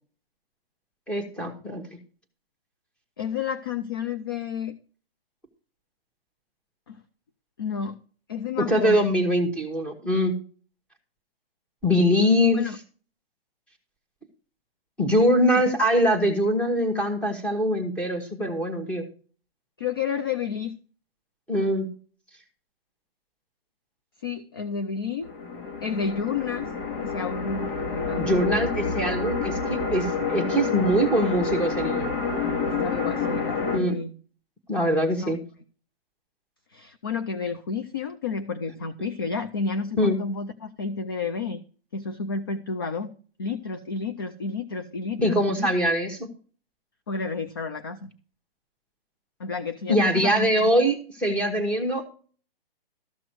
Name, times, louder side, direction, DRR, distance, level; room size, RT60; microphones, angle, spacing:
voice 1, 1.1-1.8 8.6-10.3 11.8-12.6 15.0-19.0 21.5-21.9 28.1-32.1 33.7-34.0 34.7-35.4 40.0-40.2 45.2-46.3 49.9-52.1, equal, 5° left, 4 dB, 1.2 m, -23 dB
voice 2, 3.2-4.8 6.9-7.0 7.6-8.0 8.3-9.1 12.5-12.8 19.8-20.7 24.2-25.3 25.8-26.7 27.0-28.7 32.7-34.1 35.2-35.4 36.7-41.6 41.9-43.1 43.4-45.7 47.1-48.1 49.4-50.7, left 5 dB, 25° left, 10 dB, 0.3 m, -31 dB
sound 1, 25.2-33.8, left 4 dB, 60° left, 2.4 m, -28 dB
13.5 x 6.0 x 4.5 m, 0.40 s
hypercardioid pair, 160°, 30 cm